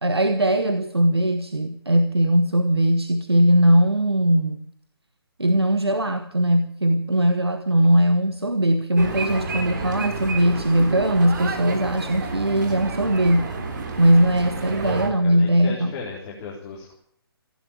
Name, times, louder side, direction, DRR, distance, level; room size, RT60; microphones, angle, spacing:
voice 1, 0.0-4.6 5.4-13.5 14.0-15.9, right 1 dB, 85° right, 9 dB, 1.3 m, -20 dB
sound 1, 9.0-15.1, right 3 dB, 50° right, 3.4 m, -30 dB
voice 2, 14.8-16.9, left 5 dB, 30° left, -4 dB, 3.7 m, -36 dB
16.0 x 10.5 x 8.7 m, 0.68 s
figure-of-eight pair, 135°, 13 cm